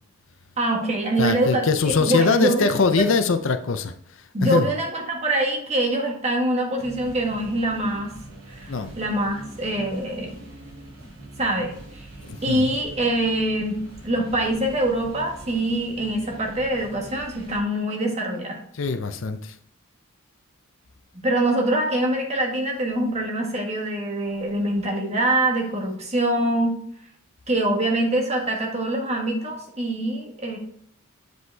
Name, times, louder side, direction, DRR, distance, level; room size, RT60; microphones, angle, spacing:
voice 1, 0.6-2.7 4.3-8.1 8.5-10.4 11.4-12.1 12.4-13.8 14.0-18.6 21.2-26.7 27.5-30.6, right 1 dB, 30° right, 1 dB, 1.6 m, -24 dB
voice 2, 1.2-3.9 4.4-4.7 8.7-8.9 12.2-12.7 18.7-19.6, left 4 dB, 60° left, 10 dB, 0.6 m, -22 dB
sound 1, 6.8-17.6, right 2 dB, 60° right, 2.9 m, -43 dB
7.9 x 5.1 x 3.4 m, 0.68 s
head